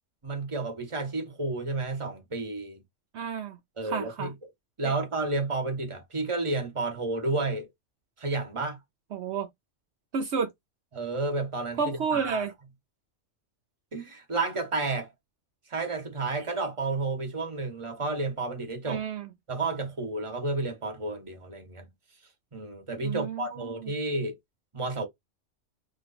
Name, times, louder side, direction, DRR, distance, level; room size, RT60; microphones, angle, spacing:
voice 1, 0.2-2.8 3.8-4.3 4.8-7.7 8.2-8.8 10.9-12.5 13.9-15.1 15.7-19.0 19.5-21.9 22.5-24.4 24.7-25.1, right 3 dB, 25° right, 1.2 m, -31 dB
voice 2, 3.1-3.6 3.8-4.3 4.8-4.9 9.1-9.5 10.1-10.5 11.8-12.5 18.9-19.3 23.0-23.9, right 5 dB, 70° right, 0.8 m, -31 dB
3.1 x 2.3 x 4.1 m
omnidirectional pair, 1.3 m